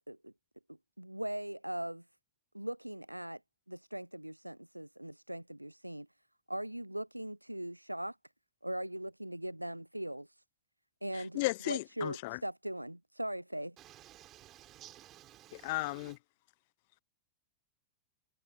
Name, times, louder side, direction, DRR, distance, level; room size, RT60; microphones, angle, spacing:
voice 1, 1.0-2.0 2.5-3.4 3.7-6.1 6.5-8.2 8.6-10.3 11.0-13.8, right 1 dB, 90° right, 0.7 m, -40 dB
voice 2, 11.1-12.4 15.6-16.2, left 22 dB, 50° left, 0.9 m, -35 dB
voice 3, 13.8-16.2, right 13 dB, 35° right, 5.0 m, -55 dB
figure-of-eight pair, 90°, 0 cm